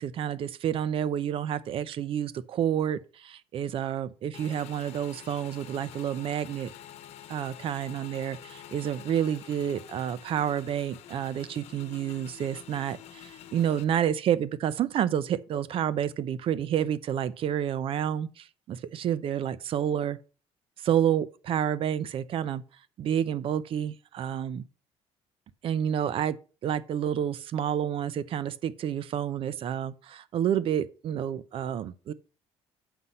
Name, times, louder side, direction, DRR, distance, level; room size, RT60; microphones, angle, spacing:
voice 1, 0.0-6.7 7.3-20.2 20.8-22.6 23.0-24.6 25.6-26.4 26.6-32.1, right 9 dB, 50° right, 0.7 m, -29 dB
Motorcycle / Engine, 4.3-13.8, left 11 dB, 65° left, 1.0 m, -47 dB
7.9 x 5.6 x 5.4 m
cardioid pair, 125°, 12 cm